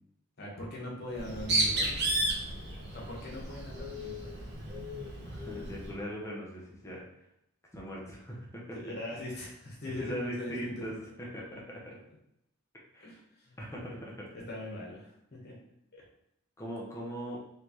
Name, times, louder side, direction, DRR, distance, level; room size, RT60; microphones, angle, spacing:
voice 1, 0.4-2.0 2.9-4.4 8.7-10.9 11.9-12.0 13.0-15.6 15.9-16.0, left 1 dB, 50° left, -3 dB, 1.2 m, -41 dB
Bird, 1.1-6.0, right 1 dB, 50° right, 0.9 m, -33 dB
voice 2, 5.3-7.0 7.7-8.8 10.0-11.9 12.9-13.2 13.6-14.3 16.6-17.4, equal, 15° left, -3 dB, 0.8 m, -40 dB
3.9 x 3.3 x 3.1 m, 0.81 s
head